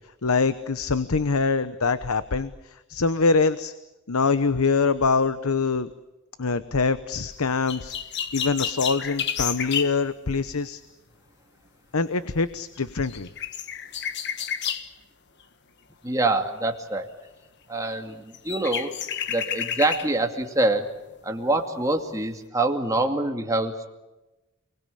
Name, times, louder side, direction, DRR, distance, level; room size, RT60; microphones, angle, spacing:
voice 1, 0.2-3.7 4.1-5.9 6.4-7.9 8.3-10.8 11.9-13.3, left 4 dB, 90° left, 13 dB, 0.9 m, -24 dB
sound 1, 7.7-10.0 12.8-12.9 13.0-14.9 17.9-18.0 18.3-20.1 20.6-20.7, left 8 dB, 55° left, 1.6 m, -30 dB
voice 2, 16.0-17.1 17.7-18.9 19.3-20.9 21.2-23.9, right 2 dB, 15° right, 4 dB, 2.3 m, -25 dB
29.5 x 20.0 x 8.5 m, 1.0 s
head